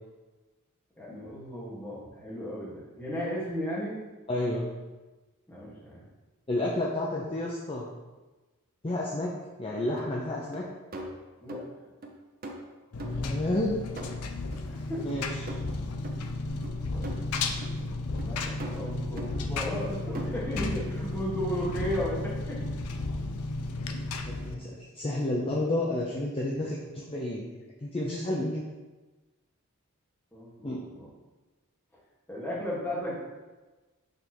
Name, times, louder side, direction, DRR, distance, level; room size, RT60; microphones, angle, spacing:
voice 1, 1.0-4.0 5.5-6.0 11.4-11.7 14.7-15.1 16.9-17.3 17.7-22.6 30.3-31.1 32.3-33.1, equal, 10° left, -6 dB, 1.7 m, -35 dB
voice 2, 4.3-4.7 6.5-7.9 8.8-10.7 13.0-13.8 15.0-15.5 24.2-28.6 30.6-30.8, left 1 dB, 25° left, -3 dB, 0.6 m, -31 dB
sound 1, 10.0-10.1 10.5-10.6 10.9-11.7 12.0-12.1 12.4-13.7 14.0-14.7 15.1-15.2 15.5-15.7 16.0-16.2 16.6-17.3 17.6-17.7 18.2-18.3 18.6-18.9 19.2-19.3 19.7-19.9 20.1-20.5, right 1 dB, 40° right, 0.7 m, -41 dB
Engine, 12.9-24.5, left 2 dB, 90° left, 0.5 m, -33 dB
6.6 x 3.5 x 4.4 m, 1.2 s
head